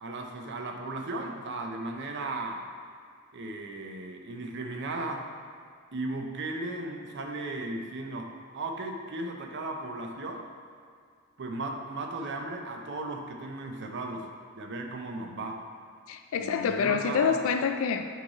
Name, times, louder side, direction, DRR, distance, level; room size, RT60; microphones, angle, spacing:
voice 1, 0.0-2.7 3.3-5.2 5.9-10.5 11.4-14.3 14.5-15.6 16.4-17.4, right 2 dB, 55° right, 3 dB, 0.6 m, -36 dB
voice 2, 16.1-18.1, left 6 dB, 70° left, 7 dB, 0.3 m, -27 dB
6.4 x 3.2 x 4.8 m, 2.3 s
head